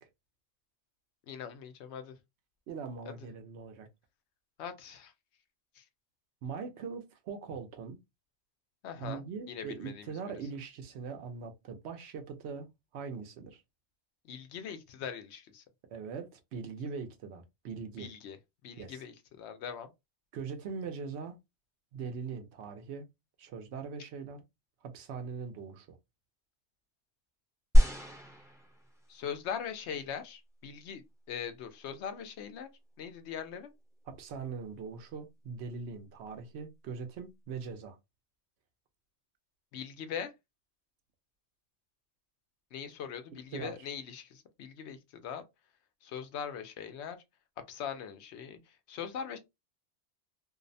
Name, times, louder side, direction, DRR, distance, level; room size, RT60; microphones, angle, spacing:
voice 1, 1.3-2.2 3.1-3.2 4.6-5.1 5.8-5.9 8.8-9.2 9.5-10.0 14.2-15.6 18.0-18.4 18.6-19.9 29.1-32.7 33.0-33.7 39.7-40.3 42.7-45.4 46.0-47.2 47.7-48.6 48.9-49.4, left 7 dB, 75° left, 0.8 m, -41 dB
voice 2, 2.7-3.9 6.4-8.0 9.0-13.6 15.9-18.1 18.8-19.0 20.3-21.4 21.9-23.1 23.4-24.4 24.8-26.0 34.1-38.0 43.5-43.9, right 5 dB, 70° right, 0.9 m, -41 dB
sound 1, 27.7-29.2 30.0-30.1, equal, 5° right, 0.5 m, -25 dB
2.6 x 2.0 x 2.5 m
omnidirectional pair, 1.2 m